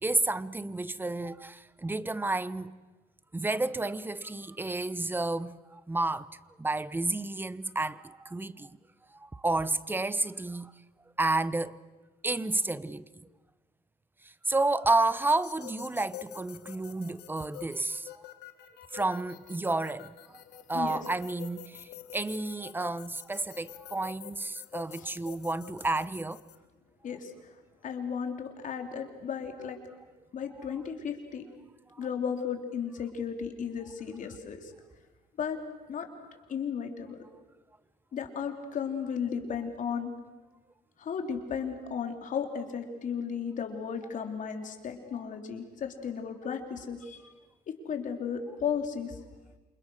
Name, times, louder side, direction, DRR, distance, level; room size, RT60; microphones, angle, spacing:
voice 1, 0.0-2.8 3.3-6.3 6.6-8.8 9.1-10.7 11.2-11.8 12.2-13.3 14.2-18.3 18.9-26.4 31.9-32.0, right 2 dB, 10° right, 0.9 m, -31 dB
sound 1, 15.3-26.6, left 12 dB, 80° left, 1.7 m, -48 dB
voice 2, 27.8-29.8 30.3-31.4 32.0-34.7 35.4-35.6 35.9-36.1 36.5-37.2 38.1-40.1 41.0-47.2 47.7-49.2, left 7 dB, 50° left, 3.9 m, -34 dB
29.0 x 27.0 x 6.6 m
cardioid pair, 110°, 17 cm